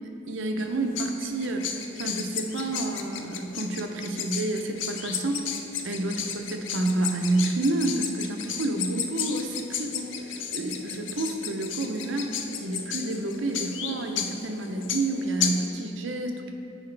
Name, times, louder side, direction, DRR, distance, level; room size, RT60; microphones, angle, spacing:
voice 1, 0.3-5.4 5.8-12.3 12.6-16.5, right 2 dB, 75° right, 4 dB, 0.7 m, -29 dB
sound 1, 0.6-15.7, left 7 dB, 70° left, 0.5 m, -34 dB
9.7 x 4.8 x 3.3 m, 2.4 s
head